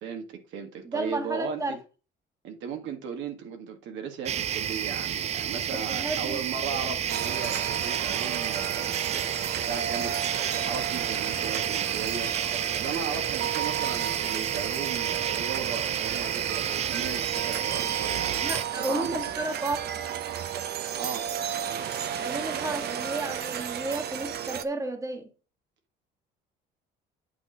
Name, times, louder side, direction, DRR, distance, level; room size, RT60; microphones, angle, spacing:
voice 1, 0.0-1.8 2.4-18.4 18.8-19.2 21.0-21.3, right 6 dB, 75° right, 1.8 m, -37 dB
voice 2, 0.8-1.8 5.7-6.4 6.7-7.1 18.4-19.9 22.2-25.3, right 2 dB, 15° right, 1.5 m, -33 dB
sound 1, 4.3-18.6, right 9 dB, 35° right, 0.4 m, -31 dB
sound 2, 7.1-24.6, right 9 dB, 55° right, 0.9 m, -33 dB
8.7 x 4.2 x 5.0 m
cardioid pair, 110°, 20 cm